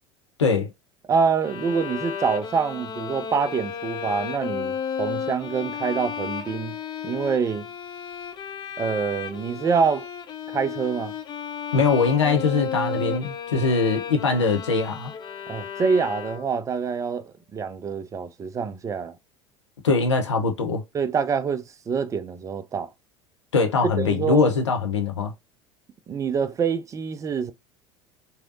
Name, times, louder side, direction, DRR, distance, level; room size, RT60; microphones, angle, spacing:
voice 1, 0.4-0.7 11.7-15.1 19.8-20.8 23.5-25.3, left 4 dB, 75° left, 0.5 m, -22 dB
voice 2, 1.1-6.8 7.0-7.7 8.8-10.1 10.5-11.1 15.5-19.2 20.9-22.9 24.0-24.5 26.1-27.5, right 6 dB, 20° right, 0.4 m, -26 dB
Bowed string instrument, 1.4-16.7, left 7 dB, 30° left, 0.5 m, -33 dB
3.1 x 2.7 x 2.5 m
figure-of-eight pair, 70°, 15 cm